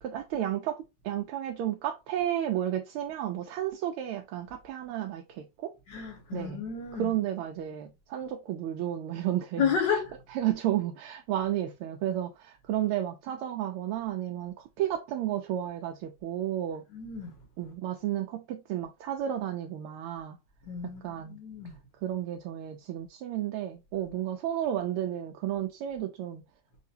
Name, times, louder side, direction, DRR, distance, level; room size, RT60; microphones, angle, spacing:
voice 1, 0.0-0.8 1.0-5.7 6.3-6.6 7.0-9.6 10.3-16.8 17.6-20.4 21.0-21.4 22.0-26.4, right 11 dB, 85° right, 1.5 m, -32 dB
voice 2, 5.9-7.1 9.6-10.1 16.9-17.3 20.7-21.8, left 6 dB, 60° left, 1.9 m, -31 dB
5.6 x 2.7 x 2.7 m
omnidirectional pair, 2.4 m